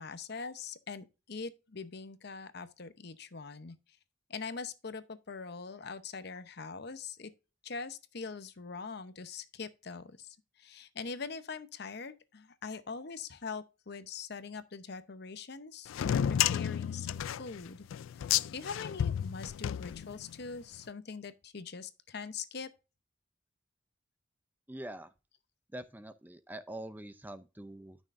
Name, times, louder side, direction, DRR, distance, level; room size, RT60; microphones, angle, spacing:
voice 1, 0.0-3.8 4.3-7.3 7.6-17.9 18.1-22.7, left 5 dB, 55° left, 0.8 m, -43 dB
sound 1, 15.9-20.5, left 10 dB, 85° left, 0.3 m, -32 dB
voice 2, 24.7-25.1 25.7-28.0, right 1 dB, 10° right, 0.5 m, -44 dB
12.5 x 6.4 x 2.5 m
head